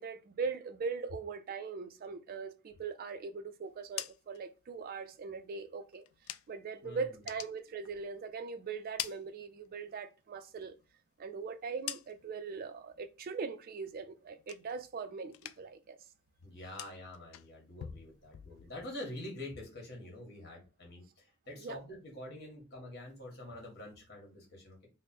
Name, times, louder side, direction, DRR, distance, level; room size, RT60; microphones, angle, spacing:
voice 1, 0.0-6.0 6.5-10.7 11.2-16.0 21.5-21.8, right 5 dB, 45° right, 0.3 m, -40 dB
sound 1, 3.7-6.8 7.1-8.4 8.7-10.0 10.4-12.5 12.9-13.3 13.7-15.0 15.3-15.9 16.1-19.0, left 12 dB, 85° left, 0.3 m, -47 dB
voice 2, 6.8-7.2 16.4-24.8, left 1 dB, 50° left, 1.4 m, -46 dB
3.3 x 2.0 x 4.2 m
head